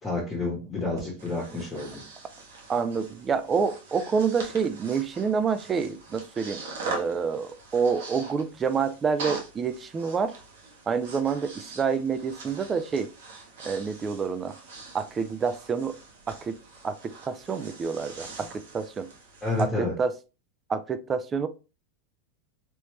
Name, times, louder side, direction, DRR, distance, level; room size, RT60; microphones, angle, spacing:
voice 1, 0.0-2.0 19.4-19.9, left 3 dB, 20° left, 1.3 m, -29 dB
Breathing, 1.0-19.7, right 3 dB, 70° right, 1.2 m, -43 dB
voice 2, 2.7-10.3 10.9-13.1 13.7-14.5 14.9-16.0 16.3-16.6 16.8-19.1 19.6-20.1 20.7-21.5, right 5 dB, 25° right, 0.4 m, -28 dB
3.0 x 3.0 x 3.1 m
hypercardioid pair, 100°, 0 cm